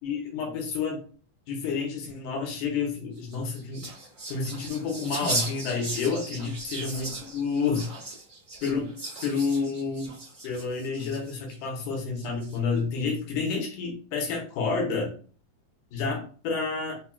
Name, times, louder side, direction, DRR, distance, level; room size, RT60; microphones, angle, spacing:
voice 1, 0.0-1.0 1.5-3.8 4.3-7.8 8.6-8.9 9.2-10.1 10.4-15.1 15.9-17.0, left 5 dB, 80° left, 0 dB, 2.4 m, -29 dB
sound 1, 3.2-11.6 12.2-12.8, right 2 dB, 30° right, 0.5 m, -37 dB
5.6 x 2.3 x 2.3 m, 0.41 s
omnidirectional pair, 3.6 m